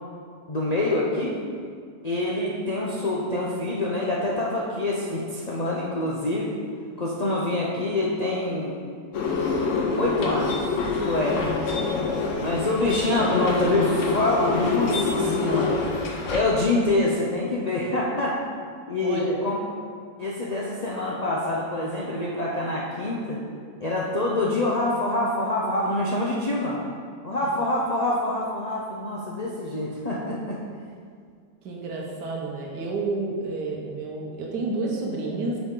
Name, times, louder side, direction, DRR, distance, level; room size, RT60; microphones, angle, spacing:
voice 1, 0.5-1.4 2.0-6.6 7.0-8.7 10.0-10.7 11.0-11.4 12.4-15.8 16.3-18.4 18.9-19.6 20.2-23.4 23.8-26.8 27.2-30.6, left 2 dB, 85° left, -5 dB, 0.3 m, -26 dB
sound 1, 9.1-16.4, left 4 dB, 55° left, 1.0 m, -26 dB
voice 2, 19.0-19.4 31.6-35.6, right 3 dB, 80° right, -2 dB, 1.5 m, -30 dB
8.1 x 4.9 x 3.8 m, 2.1 s
omnidirectional pair, 1.8 m